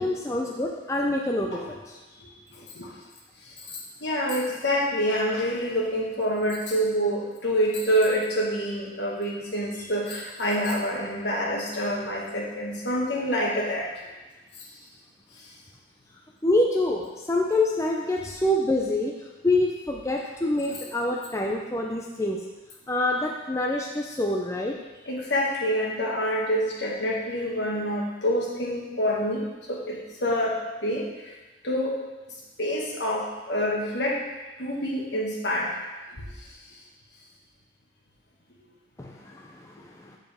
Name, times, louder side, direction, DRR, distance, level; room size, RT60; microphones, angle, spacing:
voice 1, 0.0-2.0 16.4-19.1 19.4-22.4 22.9-24.7 39.0-39.7 40.0-40.1, left 1 dB, 15° left, 0 dB, 0.5 m, -26 dB
voice 2, 2.2-2.9 3.4-13.9 15.4-15.5 20.6-20.8 25.1-31.3 31.6-32.0 32.6-34.3 34.6-35.8 36.1-36.2, equal, 70° left, -3 dB, 1.6 m, -27 dB
7.5 x 7.1 x 3.5 m, 1.1 s
head